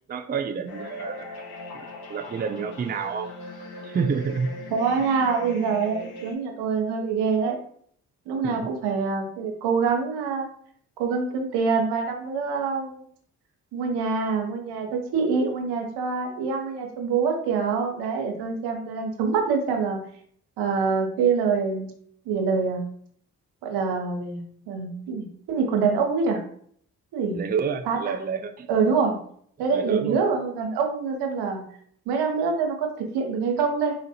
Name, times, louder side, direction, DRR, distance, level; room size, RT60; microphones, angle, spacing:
voice 1, 0.1-1.3 1.7-3.3 3.8-4.5 8.4-8.7 27.3-28.7 29.7-30.2, right 6 dB, 25° right, 8 dB, 0.4 m, -29 dB
sound 1, 0.7-6.3, left 1 dB, 70° left, 1.0 m, -39 dB
voice 2, 4.7-7.6 8.3-10.5 11.0-13.0 13.7-20.0 20.6-21.9 22.2-22.8 23.6-26.4 27.1-27.4 27.9-28.1 28.7-29.2 29.6-31.6 32.1-33.9, right 5 dB, 80° right, 3 dB, 1.0 m, -25 dB
3.8 x 2.5 x 4.2 m, 0.62 s
hypercardioid pair, 45°, 39 cm